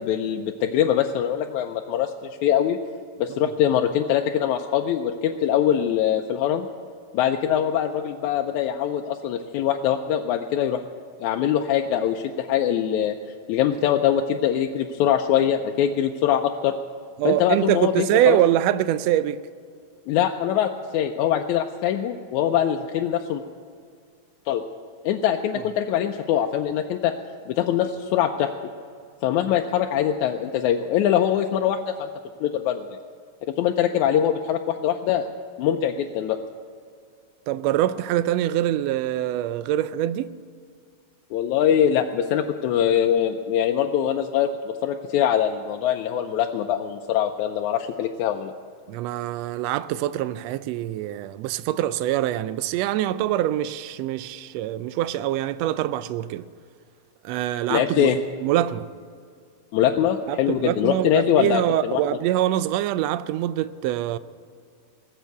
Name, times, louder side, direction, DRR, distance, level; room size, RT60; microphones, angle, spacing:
voice 1, 0.0-2.8 3.2-6.7 7.1-10.8 11.2-13.2 13.5-16.7 17.3-18.4 20.1-23.4 24.5-24.6 25.0-27.1 27.5-28.5 29.2-32.1 32.4-33.0 33.6-35.3 35.6-36.4 41.3-48.5 57.7-58.2 59.7-62.0, left 10 dB, 85° left, 2.0 m, -23 dB
voice 2, 17.2-19.4 37.5-40.4 48.9-56.4 57.2-58.1 58.4-58.9 60.3-64.2, right 13 dB, 80° right, 1.5 m, -24 dB
19.5 x 7.3 x 8.1 m
omnidirectional pair, 3.4 m